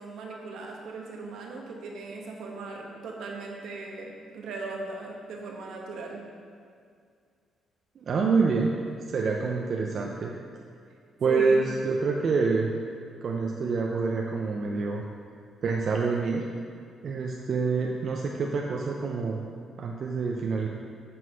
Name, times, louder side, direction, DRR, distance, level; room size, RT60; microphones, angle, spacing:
voice 1, 0.0-6.2 11.3-11.7, right 3 dB, 80° right, -1 dB, 1.1 m, -38 dB
voice 2, 8.0-8.8 9.1-10.3 11.2-12.7 13.2-15.0 15.6-16.4 17.0-19.4 19.8-20.7, right 4 dB, 55° right, 0 dB, 0.5 m, -26 dB
7.5 x 4.0 x 5.5 m, 2.2 s
cardioid pair, 90°, 0 cm